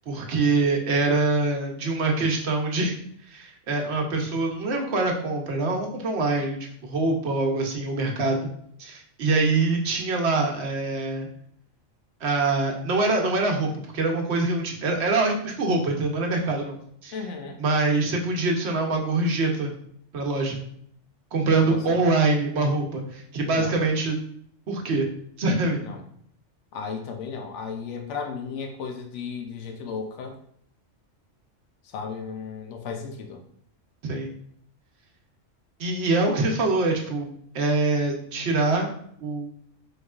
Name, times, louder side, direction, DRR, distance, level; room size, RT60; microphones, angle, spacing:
voice 1, 0.1-2.9 3.3-8.5 8.8-11.3 12.2-16.8 17.0-17.1 17.6-19.7 20.1-20.6 21.3-24.2 24.7-25.1 25.4-25.8 34.0-34.3 35.8-38.9 39.2-39.5, right 3 dB, 65° right, 1 dB, 1.0 m, -24 dB
voice 2, 17.1-17.6 21.6-22.1 23.6-23.8 25.8-26.0 26.7-30.4 31.8-33.4, left 5 dB, 75° left, 3 dB, 0.9 m, -35 dB
4.2 x 3.2 x 2.3 m, 0.66 s
omnidirectional pair, 1.3 m